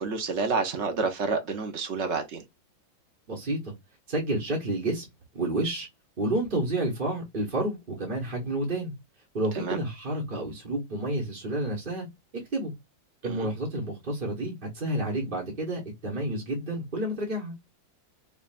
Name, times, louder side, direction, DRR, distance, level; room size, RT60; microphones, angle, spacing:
voice 1, 0.0-2.4 9.5-9.8 13.2-13.5, right 4 dB, 60° right, 0.7 m, -29 dB
voice 2, 3.3-3.7 4.1-5.0 5.3-5.9 6.2-8.9 9.3-12.1 12.3-12.7 13.2-17.5, right 1 dB, 30° right, 1.1 m, -30 dB
5.0 x 2.5 x 2.4 m
omnidirectional pair, 2.2 m